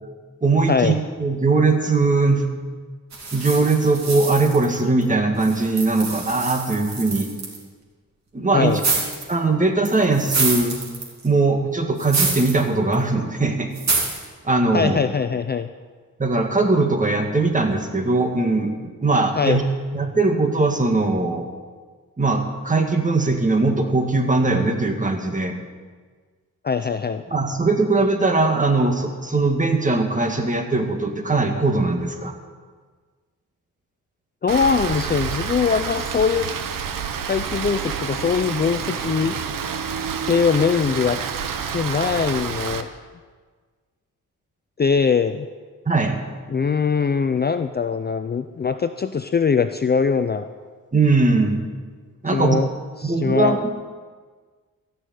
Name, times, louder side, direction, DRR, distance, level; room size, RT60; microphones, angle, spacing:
voice 1, 0.4-2.5 3.3-7.3 8.3-8.8 9.3-10.8 11.2-13.7 14.4-15.0 16.2-19.6 19.9-21.5 22.2-25.6 27.3-32.3 45.9-46.2 50.9-51.6 52.2-52.6 53.0-53.7, right 3 dB, 25° right, 4 dB, 1.8 m, -20 dB
sound 1, 3.1-5.0 5.4-7.6 8.7-9.3 9.9-11.3 12.0-12.6 12.9-13.0 13.8-14.3, right 4 dB, 55° right, 3.2 m, -26 dB
voice 2, 14.7-15.7 19.4-19.6 26.6-27.2 34.4-36.5 37.3-39.4 40.2-41.2 41.7-42.9 44.8-45.5 46.5-50.5 52.3-52.7 53.0-53.7, left 6 dB, 30° left, 9 dB, 0.5 m, -21 dB
Rain, 34.5-42.8, right 7 dB, 75° right, 1.0 m, -28 dB
14.5 x 6.5 x 9.3 m, 1.5 s
cardioid pair, 90°, 33 cm